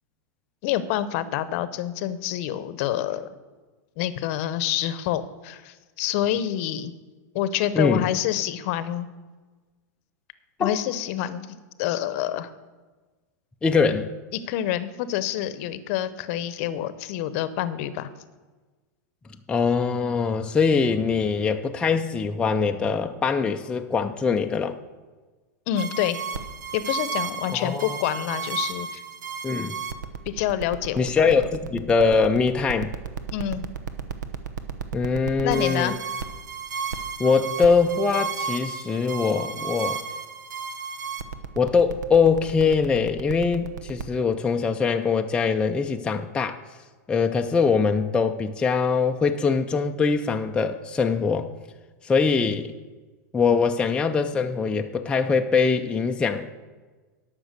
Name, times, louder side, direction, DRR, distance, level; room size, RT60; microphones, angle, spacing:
voice 1, 0.6-3.3 4.0-6.9 7.3-9.1 10.6-12.5 14.3-18.1 25.7-26.2 26.7-29.0 30.3-31.2 33.3-33.6 35.4-35.9 53.5-53.6, left 12 dB, 50° left, 14 dB, 0.8 m, -27 dB
voice 2, 7.7-8.1 10.6-10.8 13.6-14.1 19.5-24.8 27.5-28.0 29.4-29.8 31.0-32.9 34.9-35.9 37.2-40.0 41.6-46.6 47.1-51.5 52.0-52.7 53.3-56.5, left 5 dB, 10° left, 4 dB, 0.4 m, -22 dB
sound 1, 25.8-44.0, right 6 dB, 90° right, 1.0 m, -33 dB
12.0 x 6.1 x 6.6 m, 1.3 s
supercardioid pair, 135°, 10 cm